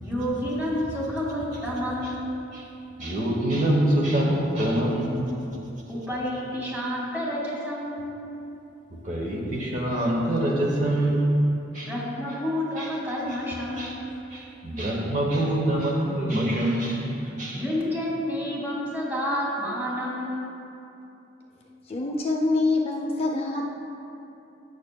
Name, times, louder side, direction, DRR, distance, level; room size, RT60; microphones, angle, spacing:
voice 1, 0.0-2.4 5.9-8.1 11.8-14.0 17.5-20.5, left 1 dB, 10° right, -6 dB, 2.0 m, -29 dB
voice 2, 3.0-5.4 9.0-11.4 11.7-11.9 12.8-12.9 13.8-14.0 14.3-17.6, right 1 dB, 40° right, -2 dB, 1.0 m, -25 dB
voice 3, 21.8-23.8, left 2 dB, 30° left, -1 dB, 0.5 m, -25 dB
15.5 x 6.6 x 2.2 m, 2.8 s
head